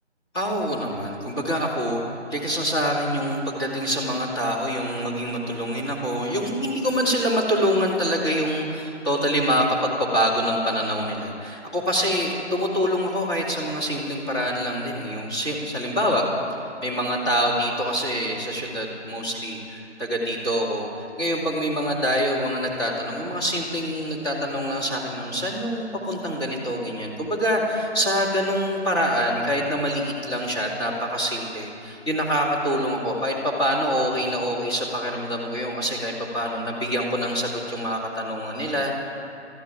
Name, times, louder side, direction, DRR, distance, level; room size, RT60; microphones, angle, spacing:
voice 1, 0.3-2.0 2.3-16.3 16.8-38.9, equal, 20° left, -5 dB, 2.6 m, -25 dB
13.0 x 12.0 x 8.9 m, 2.7 s
hypercardioid pair, 170°, 35 cm